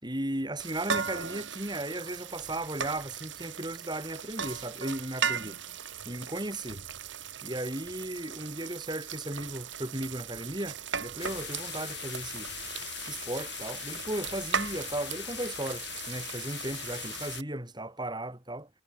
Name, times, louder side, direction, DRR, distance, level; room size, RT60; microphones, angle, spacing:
voice 1, 0.0-5.6 6.1-6.8 7.4-12.5 13.0-18.7, right 1 dB, 20° right, 4.1 m, -36 dB
sound 1, 0.6-17.4, right 6 dB, 70° right, 4.6 m, -38 dB
sound 2, 11.2-17.4, left 11 dB, 60° left, 3.8 m, -41 dB
head